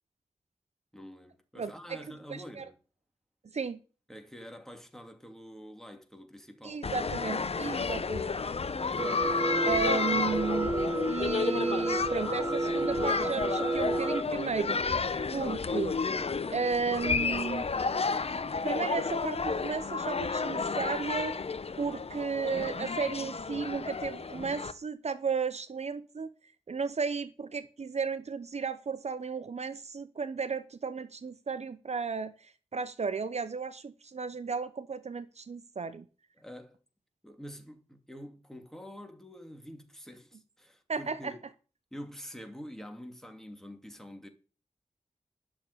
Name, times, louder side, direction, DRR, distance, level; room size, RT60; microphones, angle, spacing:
voice 1, 0.9-2.8 4.1-6.8 7.7-8.1 36.4-36.8 37.2-41.4 41.9-44.3, equal, 5° left, 2.8 m, -46 dB
voice 2, 1.6-2.6 3.5-3.8 6.6-8.3 9.6-10.7 11.1-14.8 15.3-16.0 16.5-17.7 18.6-21.3 21.8-26.3 26.7-36.0 40.9-41.3, right 5 dB, 60° right, 0.8 m, -34 dB
sound 1, 6.8-24.7, left 4 dB, 55° left, 0.9 m, -32 dB
sound 2, 9.0-14.2, right 2 dB, 20° right, 0.5 m, -31 dB
11.5 x 7.0 x 8.5 m
wide cardioid pair, 65°, 12 cm